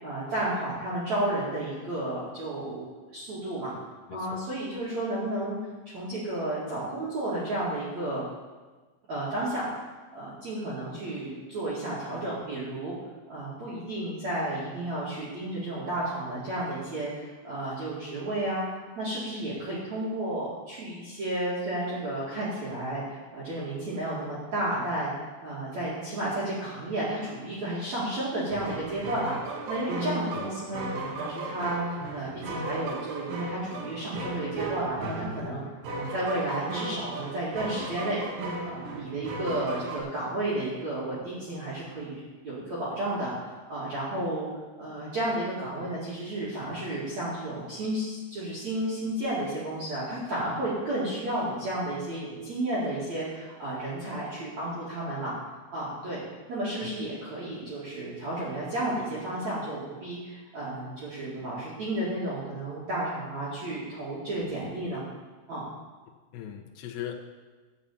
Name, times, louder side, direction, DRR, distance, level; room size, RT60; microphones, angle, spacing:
voice 1, 0.0-2.9 3.1-3.8 4.1-5.6 5.9-8.2 9.1-9.7 10.1-12.9 13.3-25.1 25.4-35.6 35.9-38.2 38.6-44.5 44.8-55.3 55.7-56.2 56.5-65.0 65.5-65.7, right 1 dB, 45° right, -9 dB, 2.9 m, -32 dB
voice 2, 4.1-4.4 30.3-30.5 56.8-56.9 66.3-67.1, left 11 dB, 75° left, 2 dB, 2.8 m, -39 dB
sound 1, 28.5-40.0, right 2 dB, 65° right, 3.3 m, -35 dB
12.5 x 5.6 x 8.6 m, 1.3 s
omnidirectional pair, 5.7 m